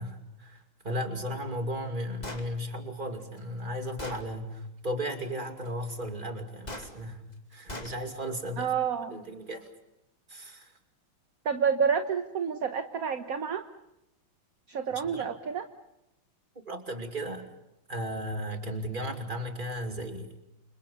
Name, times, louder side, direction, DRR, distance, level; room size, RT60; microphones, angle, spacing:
voice 1, 0.0-7.2 7.5-8.7 9.1-9.7 10.3-10.7 14.9-15.3 16.6-17.5 17.9-20.3, equal, 25° right, 4 dB, 2.6 m, -35 dB
Gunshot gunfire, 2.2-2.5 3.4-3.5 4.0-4.2 6.7-6.9 7.7-7.9, left 1 dB, 20° left, 2.5 m, -38 dB
voice 2, 8.6-9.1 11.4-13.6 14.7-15.6, right 6 dB, 50° right, 7 dB, 1.4 m, -29 dB
29.0 x 27.0 x 5.5 m, 0.87 s
omnidirectional pair, 2.3 m